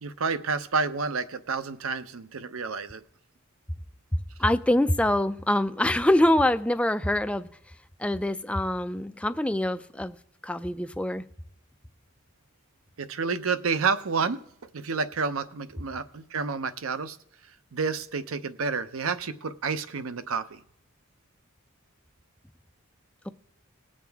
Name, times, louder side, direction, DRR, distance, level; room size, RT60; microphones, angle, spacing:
voice 1, 0.0-3.0 13.0-14.4 14.7-17.2 17.7-20.6, right 5 dB, 70° right, 11 dB, 0.7 m, -29 dB
voice 2, 4.4-7.5 8.0-10.2 10.4-11.2, left 1 dB, 5° left, 10 dB, 0.3 m, -24 dB
20.0 x 7.5 x 3.5 m, 0.72 s
head